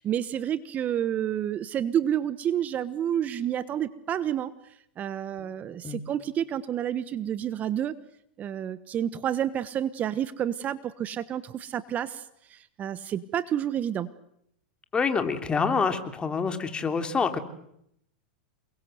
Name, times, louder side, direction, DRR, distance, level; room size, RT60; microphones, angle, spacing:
voice 1, 0.0-4.5 5.0-7.9 8.4-14.1, right 10 dB, 30° right, 15 dB, 1.2 m, -29 dB
voice 2, 14.9-17.4, left 5 dB, 20° left, 8 dB, 3.3 m, -26 dB
29.0 x 22.0 x 7.9 m, 0.75 s
hypercardioid pair, 105°, 5 cm